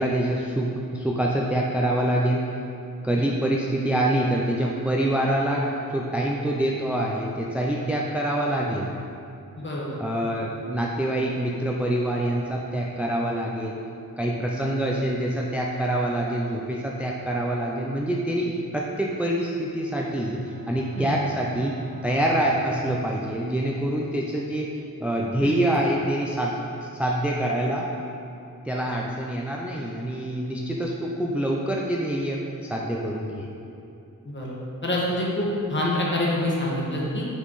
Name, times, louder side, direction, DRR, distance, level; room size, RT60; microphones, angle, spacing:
voice 1, 0.0-2.4 3.0-8.9 10.0-13.8 14.2-21.7 22.0-24.7 25.0-26.6 26.8-27.9 28.6-33.5, right 1 dB, 5° right, -2 dB, 0.4 m, -26 dB
voice 2, 9.6-10.0 20.9-21.2 25.4-25.6 34.2-34.6 34.8-37.3, left 1 dB, 35° left, -5 dB, 1.4 m, -26 dB
Bowed string instrument, 20.2-24.7, right 1 dB, 35° right, 0.7 m, -46 dB
6.0 x 5.6 x 4.0 m, 2.7 s
wide cardioid pair, 105°, 33 cm